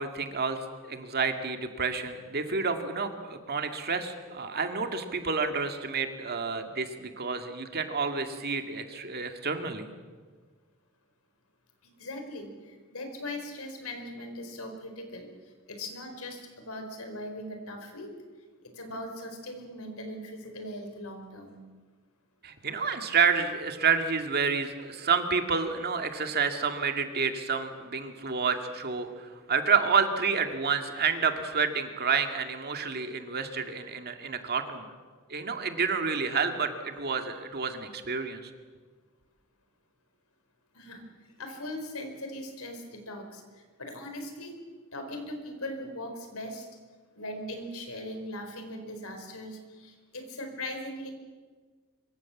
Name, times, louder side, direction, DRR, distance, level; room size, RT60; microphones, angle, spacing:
voice 1, 0.0-9.9 22.4-34.9 35.3-38.5, right 5 dB, 45° right, 6 dB, 2.3 m, -29 dB
voice 2, 12.0-15.3 15.7-18.1 18.6-21.6 40.7-41.0 41.4-43.4 43.8-44.6 44.9-46.7 47.1-51.1, left 1 dB, 70° left, 5 dB, 4.8 m, -39 dB
25.0 x 24.0 x 7.3 m, 1.5 s
head